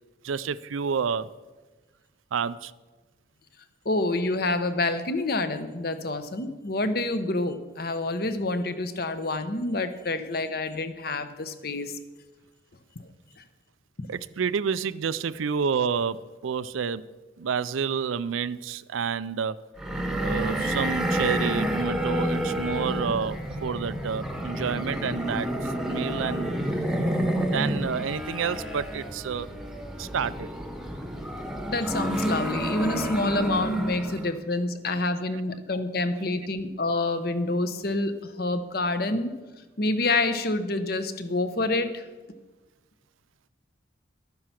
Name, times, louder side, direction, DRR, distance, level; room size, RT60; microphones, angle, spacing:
voice 1, 0.2-1.3 2.3-2.7 14.1-17.0 17.4-19.6 20.2-26.8 27.4-29.5 30.0-30.5, right 6 dB, 90° right, 16 dB, 0.4 m, -29 dB
voice 2, 3.8-11.9 13.4-13.5 31.7-39.3 39.8-42.1, left 2 dB, 50° left, 10 dB, 0.9 m, -27 dB
sound 1, 19.8-34.3, right 1 dB, ahead, 1.0 m, -29 dB
12.0 x 9.6 x 5.9 m, 1.2 s
head